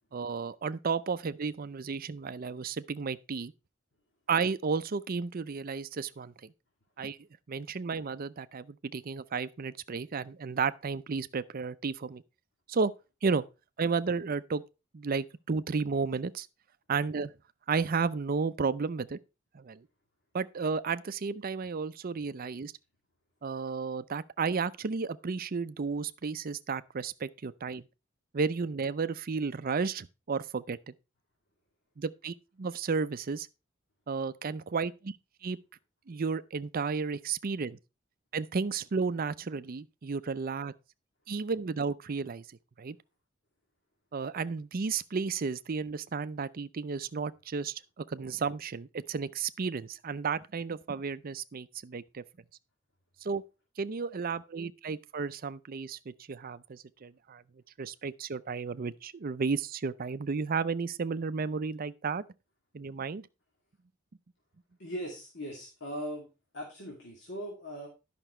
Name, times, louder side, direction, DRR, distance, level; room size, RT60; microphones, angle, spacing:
voice 1, 0.1-3.5 4.3-6.3 7.0-7.2 7.5-12.2 12.7-12.9 13.2-13.4 13.8-14.6 14.9-16.5 16.9-17.3 17.7-19.2 19.5-19.8 20.3-22.7 23.4-27.8 28.3-30.9 32.0-33.5 34.1-35.1 35.4-35.6 36.1-37.8 38.3-40.7 41.3-42.4 42.8-43.0 44.1-52.2 53.2-53.4 53.8-57.4 57.8-62.2 62.7-63.3, right 5 dB, 45° right, 0.5 m, -33 dB
voice 2, 64.8-66.3 66.5-67.9, equal, 60° left, 2.5 m, -39 dB
11.0 x 5.9 x 4.3 m
head